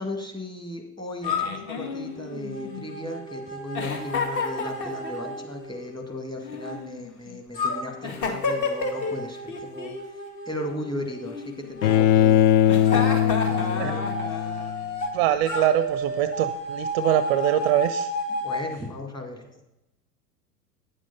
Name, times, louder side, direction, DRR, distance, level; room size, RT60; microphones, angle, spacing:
voice 1, 0.0-10.2 10.5-11.4 11.7-12.4 12.9-14.0 18.4-19.6, left 1 dB, 10° left, 2 dB, 2.0 m, -36 dB
sound 1, 1.2-6.8 7.5-12.0 12.9-15.1 15.5-18.7, left 1 dB, 80° left, 2.2 m, -33 dB
Giggle, 1.2-3.1 3.7-5.3 6.4-7.3 8.0-9.2 9.5-10.0 11.2-12.0 12.6-14.7, left 5 dB, 40° left, 2.0 m, -31 dB
Bowed string instrument, 11.8-14.9, left 10 dB, 55° left, 0.5 m, -20 dB
voice 2, 15.1-18.1, right 12 dB, 40° right, 13 dB, 0.5 m, -23 dB
9.5 x 7.4 x 5.4 m, 0.89 s
figure-of-eight pair, 90°, 47 cm